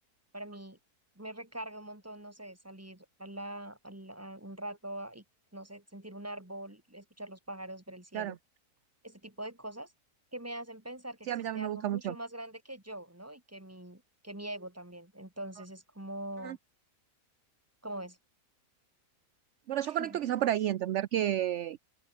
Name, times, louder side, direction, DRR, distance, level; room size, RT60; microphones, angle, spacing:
voice 1, 0.3-0.8 1.2-5.2 5.5-8.4 9.0-9.9 10.3-11.3 11.5-16.6 17.8-18.2 19.9-20.2, right 1 dB, 10° right, 2.9 m, -43 dB
voice 2, 11.3-12.1 16.4-16.6 19.7-21.8, right 12 dB, 65° right, 0.8 m, -31 dB
omnidirectional pair, 1.6 m